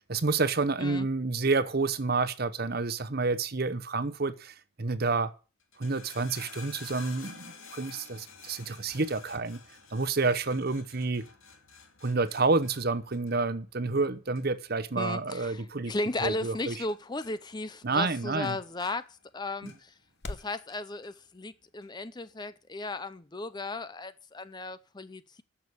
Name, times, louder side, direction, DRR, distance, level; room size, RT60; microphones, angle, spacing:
voice 1, 0.1-5.3 5.8-9.6 9.9-11.3 12.0-15.9 16.2-16.7 17.8-18.6, right 3 dB, 45° right, 0.9 m, -29 dB
sound 1, 5.6-17.0 17.2-17.8 18.1-20.0 20.4-21.1 21.8-21.9, left 5 dB, 75° left, 2.7 m, -51 dB
sound 2, 14.3-20.6, left 2 dB, 50° left, 1.0 m, -50 dB
voice 2, 15.0-19.9 20.3-25.4, left 2 dB, 20° left, 0.5 m, -36 dB
11.0 x 7.1 x 8.3 m
head